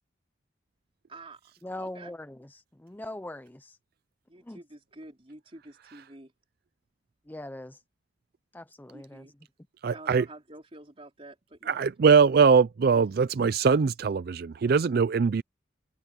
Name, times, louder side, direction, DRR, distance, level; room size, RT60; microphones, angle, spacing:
voice 1, 1.1-2.1 4.3-6.3 8.9-9.3 9.9-11.9, right 2 dB, 30° right, 4.1 m, -48 dB
voice 2, 1.6-3.8 4.5-4.6 7.3-7.8 8.5-9.3, left 1 dB, 10° left, 0.5 m, -41 dB
voice 3, 9.8-10.3 11.7-15.4, right 5 dB, 55° right, 0.4 m, -22 dB
head